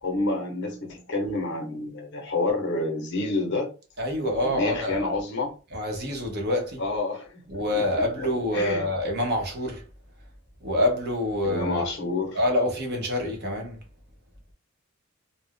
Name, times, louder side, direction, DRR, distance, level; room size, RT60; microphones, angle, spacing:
voice 1, 0.0-3.7 4.4-5.6 6.8-8.3 8.5-8.9 11.4-12.4, left 2 dB, 55° left, 0.8 m, -29 dB
voice 2, 4.0-5.2 5.7-6.8 7.5-9.8 10.6-11.9 12.3-13.8, left 1 dB, 50° right, 0.8 m, -26 dB
2.4 x 2.0 x 3.4 m
head